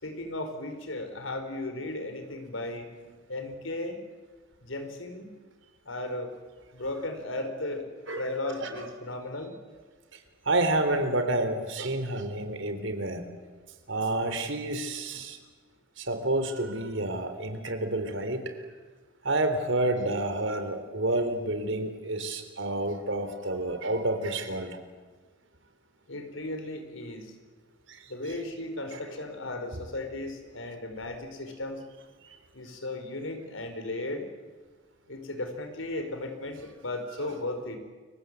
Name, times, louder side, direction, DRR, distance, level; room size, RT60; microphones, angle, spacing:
voice 1, 0.0-2.9 3.3-4.0 4.6-5.3 5.9-6.3 6.7-7.9 8.1-9.5 26.1-27.3 28.1-31.8 32.5-34.3 35.1-37.8, left 2 dB, 80° left, 7 dB, 4.5 m, -35 dB
voice 2, 10.5-13.2 13.9-15.4 16.0-18.5 19.2-24.8 27.9-28.0 28.9-29.0 32.2-32.4, right 2 dB, 70° right, 8 dB, 3.6 m, -29 dB
29.5 x 24.0 x 8.1 m, 1.4 s
head